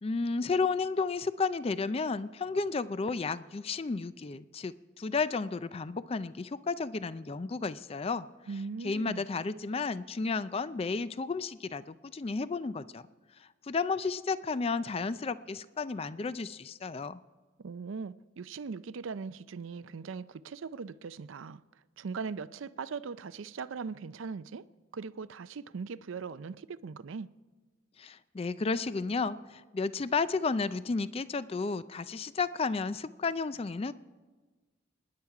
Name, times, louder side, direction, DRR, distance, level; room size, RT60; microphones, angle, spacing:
voice 1, 0.0-8.3 8.8-13.1 13.4-17.2 28.0-33.9, left 4 dB, 30° left, 0.4 m, -32 dB
voice 2, 8.5-9.3 17.6-21.6 22.0-24.6 24.9-27.3, right 5 dB, 75° right, 0.5 m, -40 dB
25.5 x 10.5 x 4.8 m
head